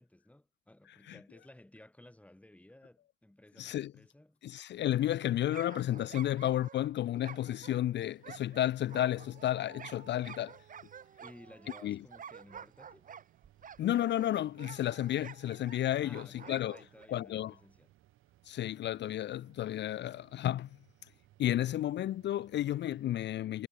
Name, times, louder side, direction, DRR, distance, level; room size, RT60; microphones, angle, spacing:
voice 1, 0.0-4.4 11.2-13.1 16.0-17.9, left 1 dB, 5° left, 2.5 m, -57 dB
voice 2, 3.6-3.9 4.4-10.6 11.8-12.0 13.8-16.8 17.1-17.5 18.4-20.7 21.4-23.7, left 12 dB, 60° left, 0.6 m, -32 dB
sound 1, 5.5-17.1, right 7 dB, 40° right, 1.1 m, -50 dB
sound 2, 8.2-23.1, right 15 dB, 85° right, 2.4 m, -65 dB
cardioid pair, 90°, 20 cm